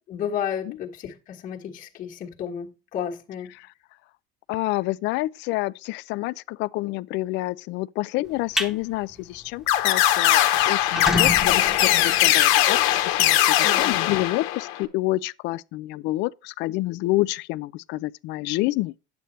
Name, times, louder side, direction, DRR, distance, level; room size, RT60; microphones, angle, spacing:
voice 1, 0.1-3.6 13.6-14.0, left 8 dB, 40° left, 1.4 m, -32 dB
voice 2, 4.5-19.0, left 19 dB, 60° left, 0.4 m, -28 dB
sound 1, 8.3-8.7 9.2-9.4 9.8-9.9 10.1-10.2 10.7-13.3, left 1 dB, ahead, 1.0 m, -29 dB
sound 2, 9.7-14.8, left 13 dB, 75° left, 1.1 m, -20 dB
9.2 x 8.1 x 3.1 m
cardioid pair, 140°, 21 cm